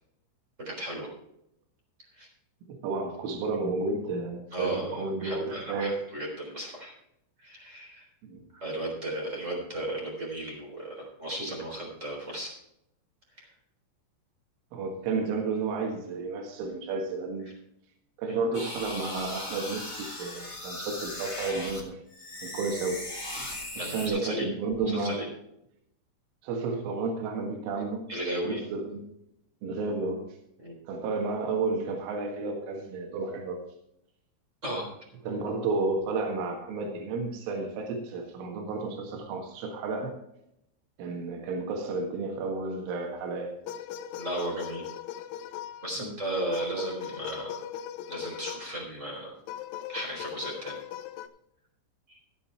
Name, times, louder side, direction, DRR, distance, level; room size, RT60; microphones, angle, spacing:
voice 1, 0.6-1.1 2.1-2.3 4.5-6.9 7.4-8.1 8.5-12.5 13.4-13.5 18.3-18.4 23.8-24.5 24.9-25.3 28.1-28.6 30.6-30.7 34.6-34.9 44.1-44.9 45.8-47.6 48.1-49.3 49.9-50.8 52.1-52.2, right 1 dB, 15° right, 0 dB, 3.2 m, -35 dB
voice 2, 2.7-6.0 8.2-8.4 14.7-17.5 18.2-22.0 22.4-23.0 23.4-25.3 26.4-28.1 28.5-29.0 29.6-30.3 30.9-33.6 35.2-40.2 41.0-43.5 46.0-46.1, right 3 dB, 85° right, 2 dB, 4.2 m, -32 dB
sound 1, 18.5-21.8 22.1-24.1, left 1 dB, 15° left, 1.0 m, -38 dB
sound 2, 42.9-43.2 43.7-46.0 46.5-48.8 49.5-51.3, left 10 dB, 80° left, 2.5 m, -39 dB
14.0 x 8.1 x 4.4 m, 0.79 s
omnidirectional pair, 5.5 m